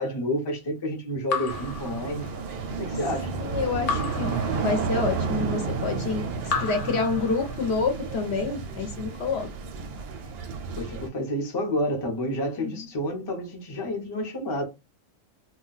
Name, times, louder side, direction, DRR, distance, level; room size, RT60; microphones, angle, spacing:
voice 1, 0.0-2.3 2.8-3.4 10.8-14.6, left 1 dB, 25° left, 0.6 m, -29 dB
Raindrop / Drip, 1.3-2.7 3.9-5.2 6.4-7.9, left 5 dB, 75° left, 0.3 m, -33 dB
sound 1, 1.5-11.1, right 5 dB, 60° right, 0.7 m, -31 dB
voice 2, 3.5-9.5 12.6-12.7, left 4 dB, 60° left, 0.9 m, -28 dB
2.3 x 2.2 x 3.9 m
omnidirectional pair, 1.3 m